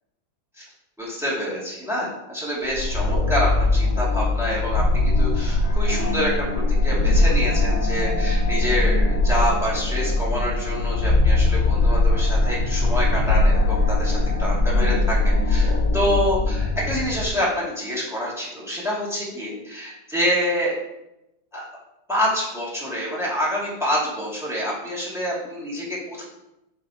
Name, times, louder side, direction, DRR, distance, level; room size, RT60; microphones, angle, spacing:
voice 1, 1.0-20.7 21.5-21.6 22.1-26.2, equal, ahead, -5 dB, 2.0 m, -27 dB
sound 1, 2.7-17.3, left 2 dB, 30° left, 1.2 m, -21 dB
6.0 x 5.6 x 5.0 m, 0.89 s
omnidirectional pair, 2.4 m